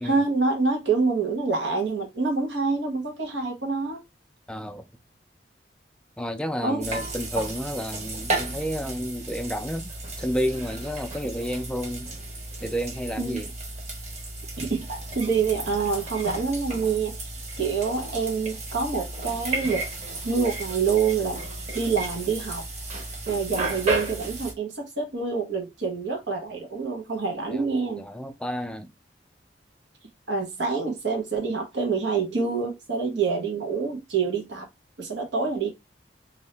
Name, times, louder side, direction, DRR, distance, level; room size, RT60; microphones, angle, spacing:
voice 1, 0.0-4.0 6.6-6.9 13.2-13.4 14.6-14.9 15.1-19.9 20.2-21.4 21.7-22.6 23.3-28.0 30.3-34.7 35.0-35.7, right 5 dB, 85° right, 1.1 m, -26 dB
voice 2, 4.5-4.8 6.2-12.1 12.6-13.5 27.5-27.6 28.0-28.9, equal, 5° left, 0.3 m, -31 dB
sound 1, 6.8-24.5, right 2 dB, 40° right, 1.1 m, -34 dB
2.8 x 2.7 x 3.2 m
head